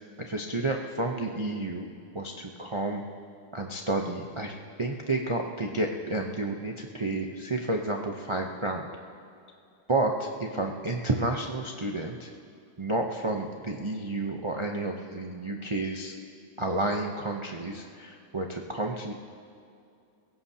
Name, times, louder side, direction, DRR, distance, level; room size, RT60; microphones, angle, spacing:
voice 1, 0.3-1.9 2.1-3.0 3.5-4.5 4.8-8.9 9.9-12.3 12.8-16.1 16.6-19.1, right 2 dB, 35° right, 1 dB, 0.4 m, -30 dB
21.5 x 17.0 x 2.9 m, 2.5 s
omnidirectional pair, 1.8 m